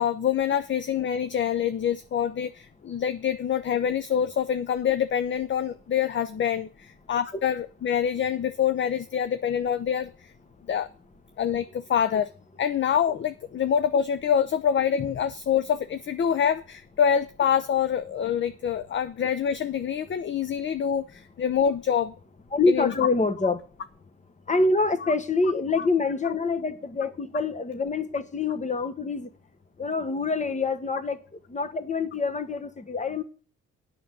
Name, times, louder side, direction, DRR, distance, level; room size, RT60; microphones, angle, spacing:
voice 1, 0.0-10.3 10.7-10.9 11.4-12.3 12.6-22.1 22.7-22.9 25.0-25.1 25.8-25.9, left 8 dB, 40° left, 0.6 m, -26 dB
voice 2, 22.5-23.6 24.5-29.3 29.8-31.2 31.5-33.2, left 3 dB, 25° left, 1.3 m, -26 dB
8.4 x 6.2 x 8.3 m
cardioid pair, 90°, 30 cm